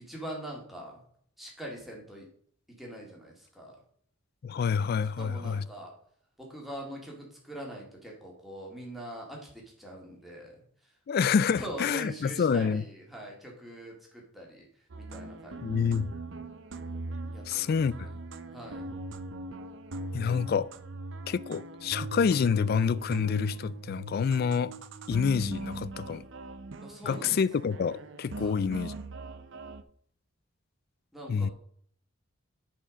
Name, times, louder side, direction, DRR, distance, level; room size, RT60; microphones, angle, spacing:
voice 1, 0.1-1.0 1.4-2.3 2.8-3.8 5.2-5.9 6.4-10.6 11.5-14.7 15.0-15.6 17.3-18.2 18.5-18.8 26.8-27.4 28.4-28.7 31.1-31.5, right 1 dB, ahead, 2.1 m, -43 dB
voice 2, 4.4-5.6 11.1-12.8 15.6-16.1 17.5-18.1 20.1-20.7 21.3-24.7 25.1-26.2 27.0-28.9 31.3-31.5, left 6 dB, 50° left, 0.3 m, -27 dB
sound 1, 14.9-29.8, right 2 dB, 60° right, 0.6 m, -40 dB
9.9 x 4.4 x 5.1 m
head